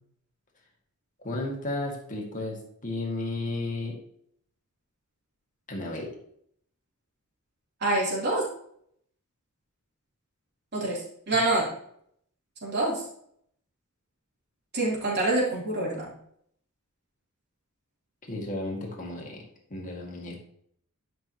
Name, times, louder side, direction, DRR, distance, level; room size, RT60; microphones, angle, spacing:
voice 1, 1.2-4.0 5.7-6.1 18.3-19.4 19.7-20.4, left 2 dB, 35° left, -1 dB, 2.1 m, -33 dB
voice 2, 7.8-8.4 10.7-11.0 11.3-11.6 12.6-12.9 14.7-16.1, right 2 dB, 50° right, -5 dB, 3.5 m, -26 dB
11.5 x 6.1 x 3.0 m, 0.68 s
head